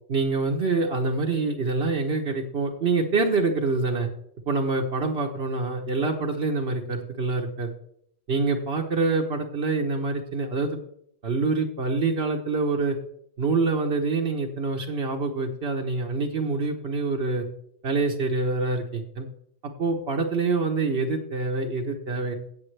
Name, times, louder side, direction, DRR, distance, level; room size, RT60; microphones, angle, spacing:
voice 1, 0.1-4.1 4.5-7.7 8.3-10.8 11.2-13.0 13.4-17.4 17.8-19.3 19.6-22.3, right 3 dB, 70° right, 1 dB, 1.3 m, -26 dB
16.5 x 7.3 x 3.3 m, 0.71 s
omnidirectional pair, 1.1 m